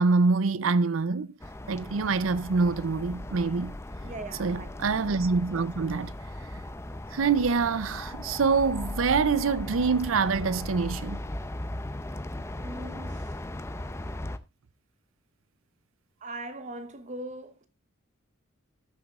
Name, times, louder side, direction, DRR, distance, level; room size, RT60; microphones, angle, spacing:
voice 1, 0.0-1.3 1.7-3.7 4.4-6.1 7.1-11.2, right 4 dB, 80° right, 0.6 m, -25 dB
sound 1, 1.4-14.4, left 1 dB, 15° left, 0.6 m, -37 dB
voice 2, 4.0-4.7 12.6-13.3 16.2-17.7, right 1 dB, 35° right, 1.0 m, -40 dB
19.0 x 7.1 x 2.4 m
head